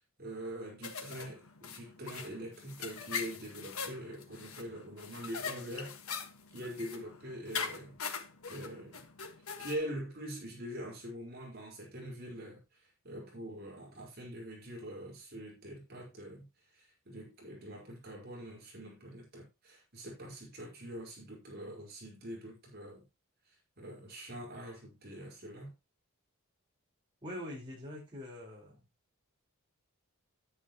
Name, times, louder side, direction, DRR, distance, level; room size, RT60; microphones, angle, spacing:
voice 1, 0.2-6.0 6.5-7.9 8.5-9.0 9.6-12.6 13.0-16.5 16.7-23.0 23.8-25.7, equal, 45° right, 4.8 m, -44 dB
sound 1, 0.8-9.7, left 6 dB, 80° left, 1.5 m, -42 dB
voice 2, 27.2-28.8, left 1 dB, 20° right, 4.7 m, -44 dB
10.0 x 9.8 x 3.0 m
head